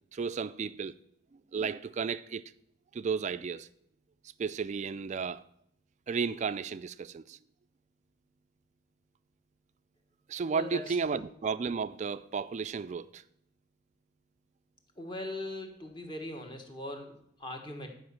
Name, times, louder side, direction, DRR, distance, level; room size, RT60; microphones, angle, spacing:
voice 1, 0.1-0.9 1.5-2.4 2.9-3.7 4.4-5.4 6.1-7.4 10.3-13.2, right 5 dB, 35° right, 0.3 m, -33 dB
voice 2, 10.5-11.3 15.0-17.9, left 1 dB, 25° left, 1.4 m, -40 dB
10.5 x 5.1 x 6.9 m
head